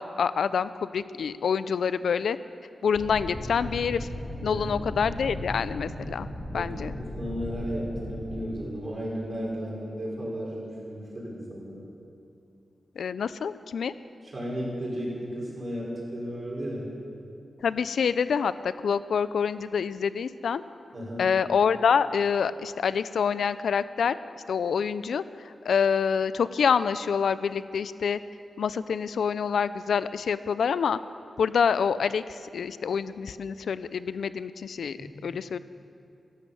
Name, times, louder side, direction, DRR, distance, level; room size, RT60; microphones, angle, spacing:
voice 1, 0.0-2.4 2.8-4.1 4.4-6.3 6.5-6.9 13.0-13.9 17.6-20.6 21.2-24.2 24.5-28.2 28.6-31.0 31.4-35.6, left 6 dB, 90° left, 15 dB, 0.4 m, -26 dB
sound 1, 2.9-8.4, left 1 dB, 25° left, 1.9 m, -36 dB
voice 2, 7.0-11.8 14.3-16.9 20.9-21.3 35.2-35.3, equal, 35° right, -4 dB, 5.3 m, -34 dB
16.5 x 12.5 x 7.1 m, 2.5 s
wide cardioid pair, 120°, 0 cm